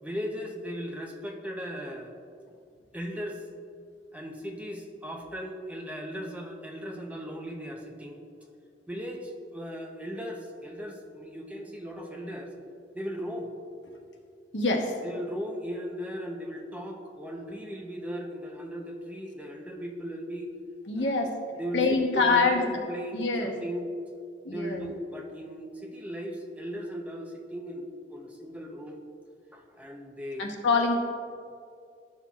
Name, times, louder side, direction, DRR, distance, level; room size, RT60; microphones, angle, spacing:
voice 1, 0.0-2.1 2.9-3.4 4.1-8.2 8.9-12.5 12.9-13.5 15.0-20.5 20.9-21.3 21.6-23.9 24.5-29.0 29.5-30.5, equal, 10° right, 1 dB, 0.6 m, -37 dB
voice 2, 14.5-14.9 20.9-21.3 21.7-22.6 23.1-23.5 24.4-24.8 30.4-31.0, left 3 dB, 75° left, 2 dB, 1.0 m, -25 dB
12.5 x 5.8 x 2.3 m, 2.4 s
head